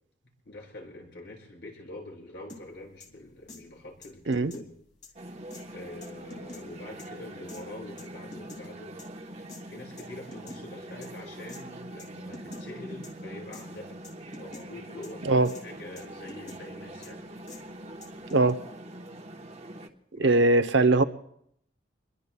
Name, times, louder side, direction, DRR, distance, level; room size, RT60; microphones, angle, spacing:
voice 1, 0.4-4.7 5.7-8.9 9.7-14.0 14.4-15.3 15.6-17.2 20.1-20.4 20.7-21.1, left 2 dB, 70° left, -3 dB, 7.1 m, -45 dB
sound 1, 2.5-2.6 3.0-3.1 3.5-3.6 4.0-4.7 5.0-5.1 5.5-5.6 6.0-6.6 7.0-7.1 7.5-7.6 8.0-8.6 9.0-9.1 9.5-9.6 10.0-10.6 11.0-11.1 11.5-11.6 12.0-12.1 12.3-12.6 13.0-13.1 13.5-13.6 14.0-14.6 15.0-15.1 15.4-15.6 16.0-16.6 17.0-17.1 17.5-17.6 18.0-18.5, left 2 dB, 40° left, 2.6 m, -46 dB
sound 2, 5.2-19.9, right 1 dB, 35° right, 1.1 m, -43 dB
voice 2, 20.2-21.0, right 2 dB, 80° right, 9 dB, 0.8 m, -21 dB
27.0 x 22.0 x 2.3 m, 0.72 s
head